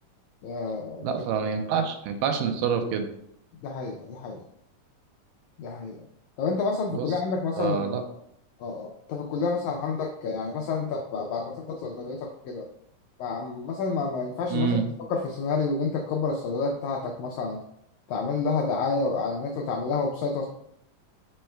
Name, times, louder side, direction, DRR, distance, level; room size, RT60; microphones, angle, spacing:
voice 1, 0.4-1.2 3.6-4.4 5.6-6.0 6.4-8.0 8.6-12.7 13.2-17.6 18.1-20.5, left 4 dB, 85° left, 1 dB, 1.6 m, -29 dB
voice 2, 1.0-3.1 6.9-7.1 7.6-8.0 14.5-14.9, right 7 dB, 85° right, 5 dB, 2.2 m, -27 dB
5.4 x 2.2 x 4.3 m, 0.73 s
omnidirectional pair, 3.9 m